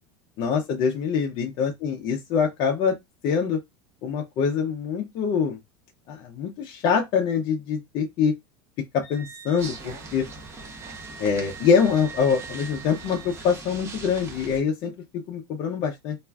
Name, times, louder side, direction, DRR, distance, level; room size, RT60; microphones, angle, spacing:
voice 1, 0.4-3.0 3.2-3.6 4.0-5.6 6.1-8.3 8.9-10.3 11.2-16.2, left 6 dB, 40° left, 0.4 m, -24 dB
Wind instrument woodwind instrument, 9.0-13.5, right 5 dB, 15° left, 0.9 m, -44 dB
sound 1, 9.6-14.6, right 3 dB, 20° right, 0.5 m, -41 dB
2.4 x 2.2 x 3.3 m
supercardioid pair, 160°, 13 cm